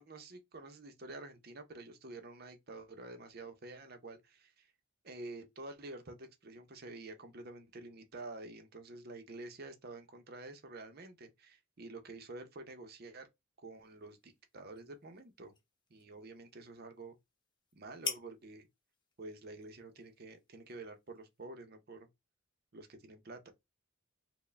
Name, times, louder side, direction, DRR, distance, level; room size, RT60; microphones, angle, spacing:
voice 1, 0.0-4.7 5.0-13.3 13.6-15.5 15.9-17.2 17.8-18.7 19.2-22.1 22.7-23.5, right 2 dB, 45° right, 0.6 m, -49 dB
sound 1, 13.7-21.4, left 5 dB, 20° left, 0.6 m, -49 dB
4.6 x 2.1 x 3.3 m
head